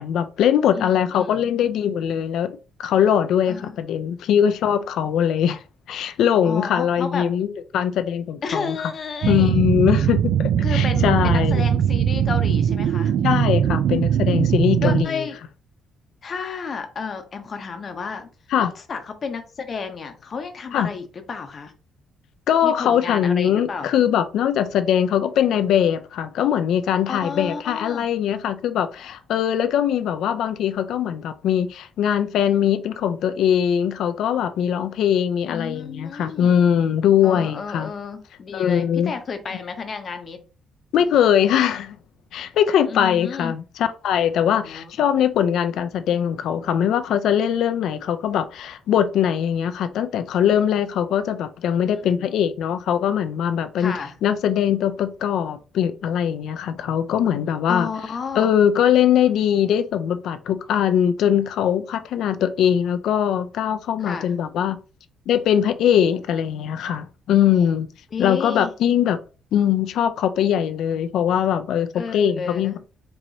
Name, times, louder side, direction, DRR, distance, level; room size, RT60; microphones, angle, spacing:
voice 1, 0.0-5.6 5.9-7.5 7.7-8.8 9.3-11.6 13.2-15.3 18.5-18.7 20.7-20.9 22.5-37.9 38.5-39.1 40.9-42.0 42.3-53.9 54.2-57.9 58.3-64.8 65.3-67.9 68.2-69.2 69.5-71.9 72.1-72.8, left 9 dB, 70° left, 0.4 m, -21 dB
voice 2, 0.7-1.4 3.5-3.7 6.4-7.3 8.4-9.6 10.6-13.1 14.8-15.4 16.2-18.3 18.6-21.7 22.6-23.9 27.1-28.1 35.5-36.6 37.2-40.4 42.9-43.5 44.6-44.9 51.9-52.3 53.8-54.2 57.7-58.5 64.0-64.3 68.1-68.7 71.9-72.8, left 5 dB, 40° left, 0.7 m, -32 dB
sound 1, 9.2-15.0, right 9 dB, 65° right, 0.3 m, -20 dB
4.5 x 2.9 x 2.7 m
cardioid pair, 140°, 0 cm